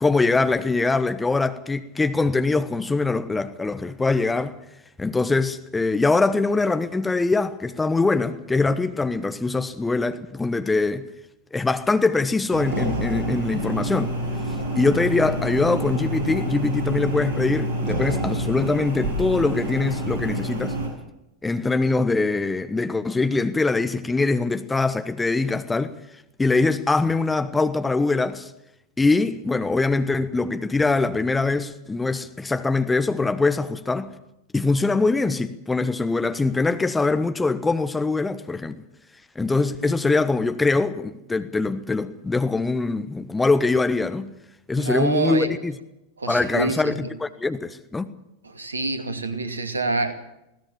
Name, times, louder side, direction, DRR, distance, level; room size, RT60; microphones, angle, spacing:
voice 1, 0.0-4.6 5.0-11.1 11.5-14.1 14.7-20.7 21.4-25.9 26.4-28.5 29.0-34.1 34.5-38.8 39.3-44.3 44.7-45.7 46.3-48.1, left 3 dB, 10° left, 1.2 m, -23 dB
sound 1, 12.5-20.9, right 1 dB, 50° right, 7.5 m, -27 dB
voice 2, 39.8-40.2 44.8-45.5 46.2-47.2 48.4-50.1, right 2 dB, 75° right, 2.4 m, -27 dB
20.5 x 17.5 x 7.4 m
figure-of-eight pair, 90°, 0 cm